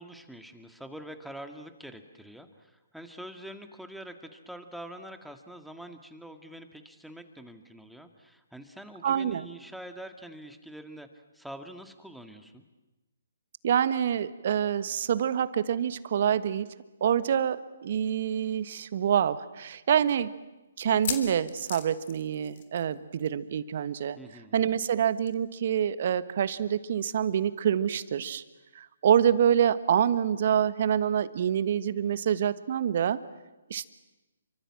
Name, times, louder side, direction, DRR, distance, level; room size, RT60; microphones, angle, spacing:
voice 1, 0.0-12.6 24.2-24.6, right 1 dB, ahead, 6 dB, 1.9 m, -45 dB
voice 2, 9.0-9.5 13.6-16.7 17.0-20.3 20.8-24.2 24.5-28.4 28.7-33.2 33.7-33.9, right 9 dB, 50° right, 14 dB, 1.3 m, -26 dB
sound 1, 18.2-18.3 18.6-18.7 19.3-19.4 20.8-23.0 23.2-23.5 23.7-23.8 25.3-25.4, left 8 dB, 50° left, 3.2 m, -38 dB
29.0 x 24.5 x 7.5 m, 1.1 s
figure-of-eight pair, 135°, 0 cm